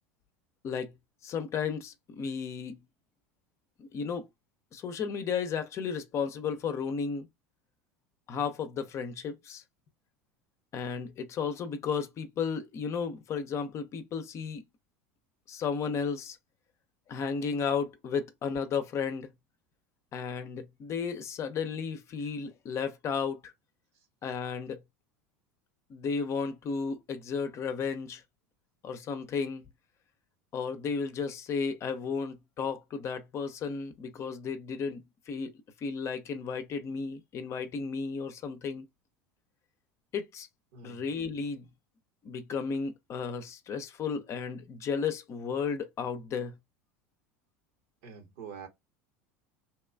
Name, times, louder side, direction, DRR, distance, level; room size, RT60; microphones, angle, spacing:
voice 1, 1.2-2.8 3.8-4.3 4.7-7.3 8.3-9.6 10.7-14.6 15.5-16.4 17.1-19.3 20.1-23.5 24.2-24.8 25.9-28.2 28.8-29.6 30.5-35.5 35.8-38.8 40.1-40.5 40.8-41.7 42.2-46.6, left 6 dB, 40° left, 0.5 m, -33 dB
voice 2, 40.7-41.0 48.0-48.7, right 6 dB, 65° right, 0.9 m, -46 dB
2.9 x 2.3 x 2.3 m
hypercardioid pair, 80°, 8 cm